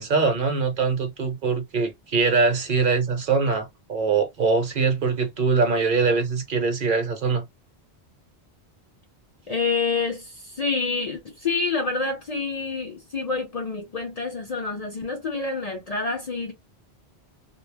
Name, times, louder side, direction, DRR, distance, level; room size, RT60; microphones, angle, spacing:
voice 1, 0.0-7.4, right 4 dB, 55° right, 0.8 m, -23 dB
voice 2, 9.5-16.5, left 4 dB, 45° left, 0.5 m, -27 dB
2.2 x 2.0 x 3.1 m
omnidirectional pair, 1.1 m